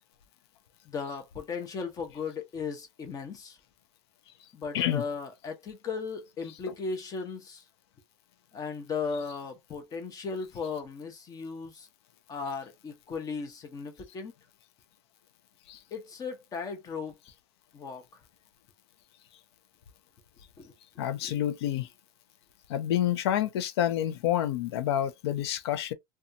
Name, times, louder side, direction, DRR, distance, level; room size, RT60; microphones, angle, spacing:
voice 1, 0.8-3.6 4.5-7.6 8.5-11.9 12.3-14.3 15.9-17.2 17.7-18.0 20.6-20.7 21.2-21.4, left 5 dB, 25° left, 0.7 m, -36 dB
voice 2, 21.0-21.9 22.7-25.9, left 11 dB, 80° left, 0.5 m, -28 dB
2.6 x 2.3 x 2.5 m
supercardioid pair, 130°, 13 cm